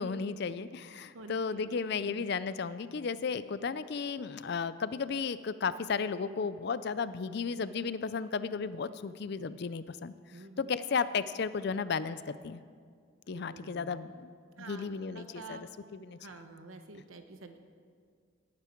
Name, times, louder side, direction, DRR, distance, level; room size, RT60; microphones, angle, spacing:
voice 1, 0.0-12.6 13.3-14.3 14.6-15.6 15.9-16.2, left 5 dB, 50° left, 15 dB, 0.4 m, -34 dB
voice 2, 0.9-2.4 10.3-10.8 13.3-14.0 14.6-15.7 16.2-17.6, right 2 dB, 75° right, 7 dB, 1.1 m, -49 dB
18.0 x 9.5 x 4.5 m, 2.1 s
head